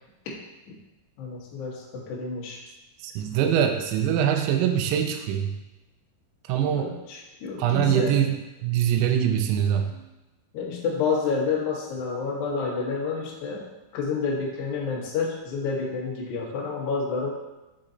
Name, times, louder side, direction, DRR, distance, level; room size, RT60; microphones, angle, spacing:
voice 1, 1.2-2.6 6.7-8.1 10.5-13.6 13.9-17.3, left 5 dB, 80° left, -3 dB, 1.7 m, -29 dB
voice 2, 3.0-5.6 6.5-6.9 7.6-8.3 8.6-10.1, right 9 dB, 80° right, 5 dB, 2.8 m, -23 dB
7.3 x 3.9 x 3.9 m, 1.0 s
omnidirectional pair, 5.5 m